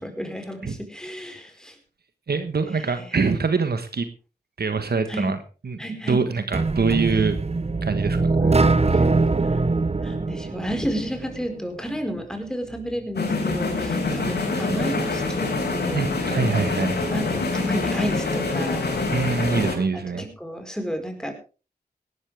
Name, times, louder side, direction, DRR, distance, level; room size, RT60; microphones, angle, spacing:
voice 1, 0.0-1.8 3.0-3.1 5.1-5.4 5.8-6.3 8.6-9.2 9.5-9.6 10.0-16.1 17.1-18.9 19.9-21.3, equal, 5° left, 4 dB, 4.8 m, -32 dB
voice 2, 2.3-4.1 4.6-5.4 5.6-7.4 7.8-8.5 15.9-17.0 19.1-20.3, right 4 dB, 70° right, 9 dB, 1.4 m, -24 dB
sound 1, 6.5-11.5, right 3 dB, 40° right, 1.0 m, -22 dB
sound 2, 13.1-19.7, left 3 dB, 85° left, 4.2 m, -25 dB
18.0 x 12.5 x 3.5 m, 0.34 s
cardioid pair, 40°, 17 cm